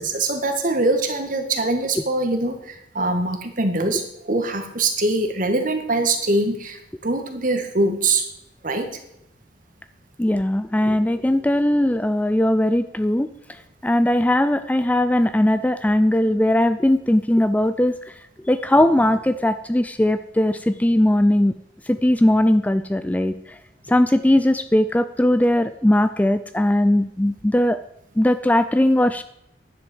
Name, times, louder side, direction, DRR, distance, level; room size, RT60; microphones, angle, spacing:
voice 1, 0.0-8.3 8.6-8.9, right 2 dB, 50° right, 6 dB, 1.8 m, -23 dB
voice 2, 10.2-17.9 18.4-21.6 21.9-23.6 23.9-27.8 28.2-29.2, left 1 dB, 10° left, 12 dB, 0.4 m, -19 dB
11.0 x 7.5 x 7.9 m, 0.79 s
head